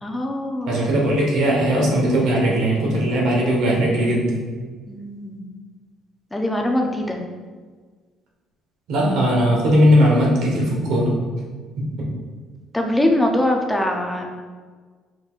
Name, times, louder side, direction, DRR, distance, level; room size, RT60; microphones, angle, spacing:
voice 1, 0.0-0.9 4.9-5.4 6.3-7.2 12.7-14.2, left 1 dB, 5° left, 2 dB, 0.4 m, -22 dB
voice 2, 0.7-4.4 8.9-11.1 12.0-12.1, equal, 60° right, -2 dB, 1.1 m, -18 dB
5.2 x 3.8 x 2.4 m, 1.5 s
cardioid pair, 170°, 0 cm